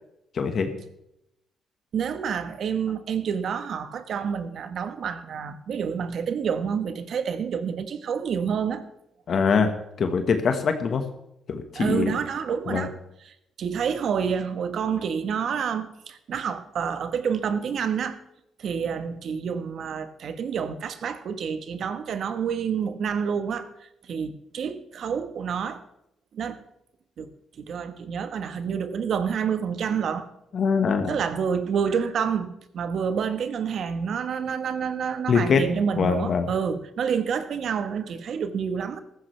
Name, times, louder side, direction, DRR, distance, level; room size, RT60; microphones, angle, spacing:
voice 1, 0.3-0.7 9.3-9.7 10.0-11.0 11.5-12.1 12.7-12.9 30.5-31.1 35.3-35.6 36.0-36.5, left 5 dB, 55° left, 1.4 m, -23 dB
voice 2, 1.9-8.8 11.7-12.9 13.3-18.2 18.6-25.8 26.3-26.6 27.2-27.3 27.6-30.3 31.1-39.0, right 7 dB, 65° right, 1.2 m, -28 dB
15.0 x 13.5 x 3.3 m
cardioid pair, 90°, 0 cm